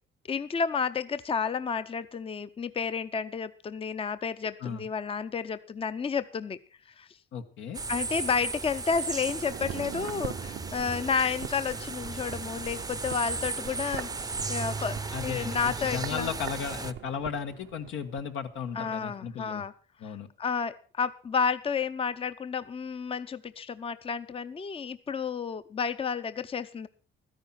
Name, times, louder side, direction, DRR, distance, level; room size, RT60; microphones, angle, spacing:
voice 1, 0.3-6.6 7.0-7.1 7.9-15.0 15.2-16.3 18.7-19.7 20.0-20.1 20.4-26.9, left 6 dB, 30° left, 13 dB, 0.6 m, -31 dB
voice 2, 7.3-7.8 15.1-19.6 20.0-20.3, left 7 dB, 85° left, 6 dB, 1.4 m, -35 dB
sound 1, 7.7-16.9, right 4 dB, 20° right, 0.6 m, -36 dB
sound 2, 9.2-18.3 18.6-18.7, right 12 dB, 85° right, 0.8 m, -43 dB
13.5 x 10.5 x 5.8 m, 0.40 s
cardioid pair, 90°, 20 cm